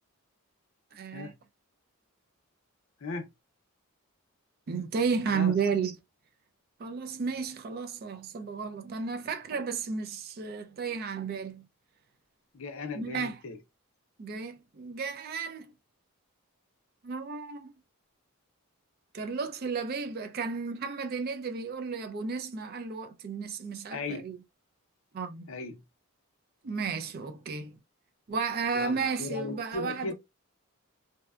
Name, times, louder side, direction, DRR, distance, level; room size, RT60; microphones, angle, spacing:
voice 1, 0.9-1.3 4.7-6.0 6.8-11.7 12.9-13.4 14.2-15.7 17.0-17.7 19.1-24.4 25.1-25.5 26.6-27.8 28.3-30.1, right 5 dB, 45° right, 0.3 m, -33 dB
voice 2, 12.5-13.6 23.9-24.3 25.5-25.8 28.7-30.1, left 3 dB, 65° left, 0.6 m, -37 dB
2.6 x 2.1 x 2.4 m
head